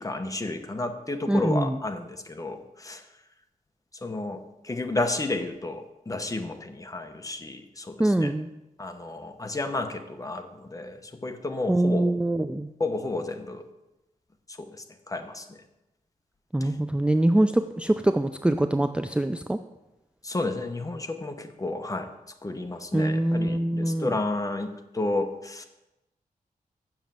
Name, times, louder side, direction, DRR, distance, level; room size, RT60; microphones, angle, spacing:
voice 1, 0.0-3.0 4.0-8.3 8.8-12.1 12.8-13.6 14.6-15.6 16.6-16.7 20.2-22.1 22.4-25.7, left 2 dB, 25° left, 6 dB, 1.0 m, -32 dB
voice 2, 1.3-1.8 8.0-8.5 11.7-12.7 16.5-19.6 22.9-24.2, right 1 dB, 5° right, 9 dB, 0.3 m, -24 dB
7.3 x 6.9 x 7.6 m, 0.97 s
wide cardioid pair, 100°, 15 cm